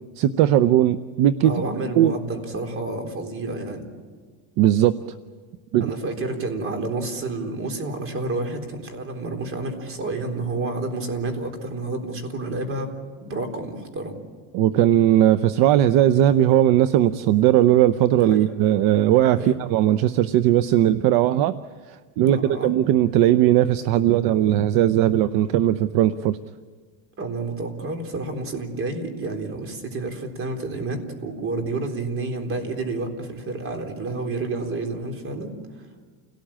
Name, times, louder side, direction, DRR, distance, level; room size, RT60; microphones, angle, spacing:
voice 1, 0.2-1.6 2.0-2.1 4.6-5.0 5.7-5.9 14.5-21.6 22.2-26.4, right 12 dB, 60° right, 13 dB, 0.8 m, -18 dB
voice 2, 1.4-3.9 5.8-12.9 13.2-14.2 18.3-18.5 19.3-19.5 22.2-22.7 27.2-35.5, right 2 dB, 30° right, 5 dB, 3.9 m, -29 dB
29.0 x 18.0 x 8.8 m, 1.5 s
cardioid pair, 145°, 40 cm